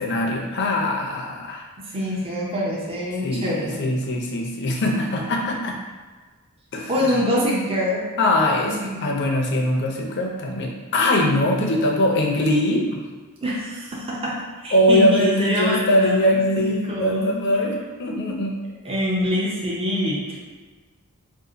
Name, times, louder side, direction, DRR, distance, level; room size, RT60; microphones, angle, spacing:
voice 1, 0.0-1.6 3.2-5.8 6.7-6.9 8.2-13.0 14.7-18.6, left 1 dB, 55° left, 0 dB, 0.6 m, -22 dB
voice 2, 1.9-3.8 6.9-8.0 8.6-9.0 13.4-14.4 14.6-17.3 18.8-20.4, equal, 25° right, -5 dB, 0.6 m, -25 dB
2.6 x 2.5 x 3.8 m, 1.3 s
head